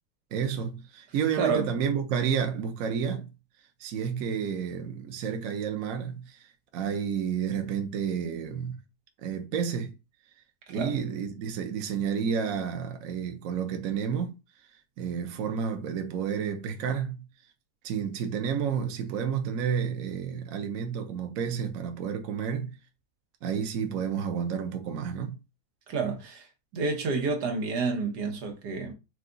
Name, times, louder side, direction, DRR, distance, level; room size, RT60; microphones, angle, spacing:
voice 1, 0.3-3.3 3.8-6.5 6.7-8.8 9.2-10.0 10.7-14.3 15.0-17.3 17.8-22.8 23.4-25.4, right 7 dB, 65° right, 1.1 m, -30 dB
voice 2, 1.3-1.7 10.7-11.0 25.9-26.5 26.7-28.9, right 4 dB, 90° right, 1.6 m, -29 dB
4.8 x 2.3 x 3.8 m
omnidirectional pair, 1.7 m